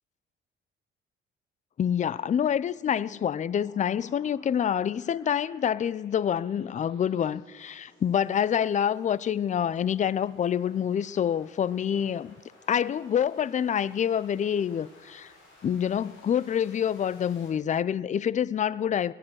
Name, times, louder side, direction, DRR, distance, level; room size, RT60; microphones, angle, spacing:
voice 1, 1.8-12.4 12.7-15.3 15.6-19.1, left 9 dB, 40° left, 0.5 m, -27 dB
sound 1, 2.7-17.5, left 2 dB, 90° left, 6.2 m, -58 dB
17.5 x 11.5 x 6.4 m
cardioid pair, 90°, 20 cm